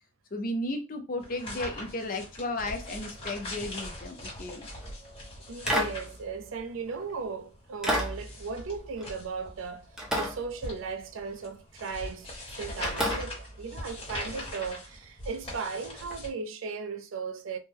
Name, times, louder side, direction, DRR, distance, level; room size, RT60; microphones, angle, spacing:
voice 1, 0.3-4.7, left 1 dB, 40° left, 0.6 m, -34 dB
sound 1, 1.2-16.3, left 1 dB, 25° left, 1.2 m, -42 dB
sound 2, 4.6-4.9 5.7-7.2 7.8-9.6 10.0-11.2 11.8-12.1 12.8-14.7 16.1-16.2, equal, 5° right, 0.5 m, -33 dB
voice 2, 5.5-9.9 10.2-17.6, right 5 dB, 70° right, 0.4 m, -36 dB
3.2 x 2.1 x 3.4 m
head